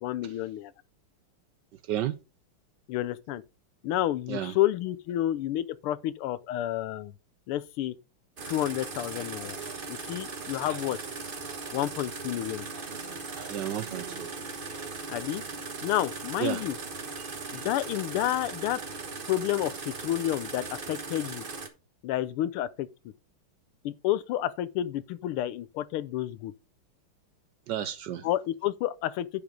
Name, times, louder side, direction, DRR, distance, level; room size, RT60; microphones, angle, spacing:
voice 1, 0.0-0.7 2.9-3.4 3.8-7.1 7.5-7.9 8.5-9.6 9.9-11.0 11.7-12.7 15.1-15.4 15.8-16.8 17.5-18.8 19.3-21.4 22.0-22.9 23.8-26.5 28.2-29.4, left 13 dB, 85° left, 1.6 m, -30 dB
sound 1, 8.4-21.7, right 4 dB, 30° right, 1.0 m, -38 dB
voice 2, 13.5-14.3 16.4-16.6 17.2-17.3 27.7-28.3, right 11 dB, 70° right, 1.1 m, -32 dB
10.5 x 4.9 x 5.1 m
omnidirectional pair, 2.3 m